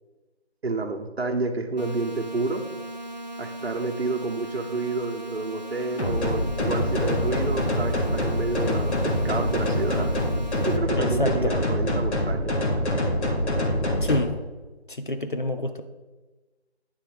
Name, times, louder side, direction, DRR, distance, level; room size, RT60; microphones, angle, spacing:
voice 1, 0.6-2.6 3.4-10.1 10.5-12.5, right 3 dB, 65° right, 4 dB, 0.9 m, -29 dB
sound 1, 1.8-10.8, right 1 dB, 40° right, 0.5 m, -38 dB
sound 2, 6.0-14.2, left 1 dB, 80° left, 1.5 m, -25 dB
voice 2, 11.0-11.6 14.0-14.3 14.9-15.8, left 1 dB, 50° left, 8 dB, 0.5 m, -27 dB
9.1 x 3.5 x 4.9 m, 1.2 s
figure-of-eight pair, 175°, 33 cm